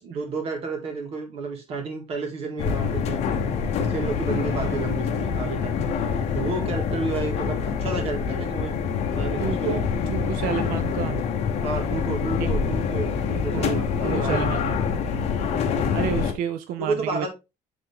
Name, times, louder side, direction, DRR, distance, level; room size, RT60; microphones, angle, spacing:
voice 1, 0.0-3.2 3.8-5.7 6.1-8.7 9.2-9.8 11.6-14.5 16.8-17.3, right 3 dB, 45° right, 3 dB, 2.0 m, -31 dB
sound 1, 2.6-16.3, left 6 dB, 50° left, 1.2 m, -26 dB
voice 2, 9.4-11.2 12.4-12.5 13.3-14.7 15.5-15.6 15.9-17.3, right 9 dB, 85° right, 10 dB, 0.6 m, -31 dB
8.6 x 3.6 x 3.6 m, 0.25 s
cardioid pair, 180°, 14 cm